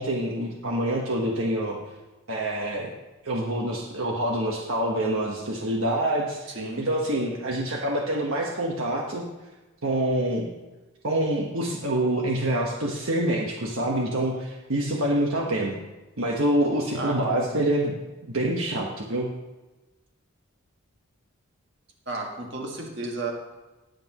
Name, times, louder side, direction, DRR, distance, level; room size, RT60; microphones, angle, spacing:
voice 1, 0.0-1.8 2.3-2.9 3.2-9.2 9.8-10.5 11.0-15.7 16.2-17.9 18.3-19.3, right 1 dB, 70° right, -1 dB, 1.3 m, -26 dB
voice 2, 6.5-6.9 16.9-17.6 22.1-23.3, right 2 dB, 55° right, 0 dB, 1.9 m, -33 dB
20.5 x 7.9 x 3.0 m, 1.1 s
head